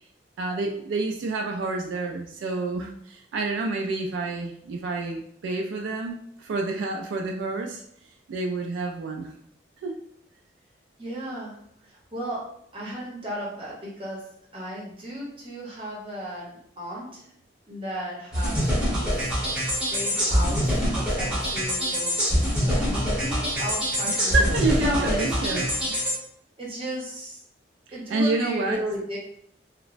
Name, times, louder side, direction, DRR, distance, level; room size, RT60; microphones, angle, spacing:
voice 1, 0.4-7.8 8.3-9.3 9.8-10.0 24.1-25.7 27.9-28.8, right 3 dB, 90° right, 1 dB, 0.3 m, -28 dB
voice 2, 11.0-11.5 12.1-12.4 12.7-14.2 14.5-17.2 17.7-18.5 18.8-19.1 19.5-20.7 20.9-22.4 22.6-25.6 26.6-27.4 27.9-29.2, equal, 30° right, -5 dB, 0.8 m, -34 dB
sound 1, 18.3-26.1, equal, 5° right, 1.0 m, -25 dB
2.9 x 2.1 x 2.5 m, 0.70 s
head